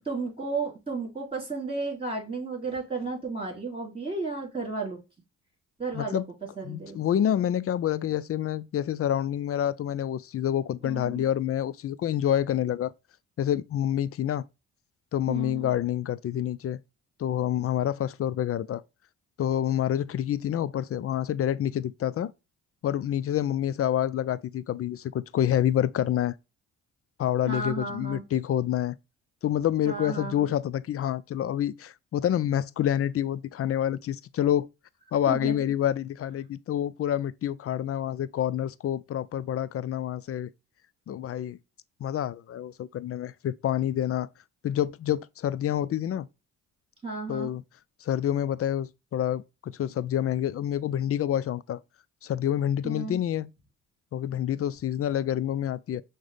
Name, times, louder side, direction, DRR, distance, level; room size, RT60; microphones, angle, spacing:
voice 1, 0.0-5.0 5.8-6.2 6.6-7.0 10.8-11.2 15.3-15.7 27.5-28.2 29.8-30.5 35.3-35.5 47.0-47.5 52.8-53.2, right 3 dB, 15° right, 3.0 m, -33 dB
voice 2, 5.9-6.2 6.6-12.9 13.4-14.4 15.1-16.8 17.2-18.8 19.4-22.3 22.8-26.3 27.2-29.0 29.4-34.7 35.1-40.5 41.1-41.6 42.0-44.3 44.6-46.3 47.3-47.6 48.0-51.8 52.2-53.5 54.1-56.0, left 11 dB, 45° left, 0.4 m, -27 dB
6.1 x 2.2 x 3.3 m
supercardioid pair, 65°, 34 cm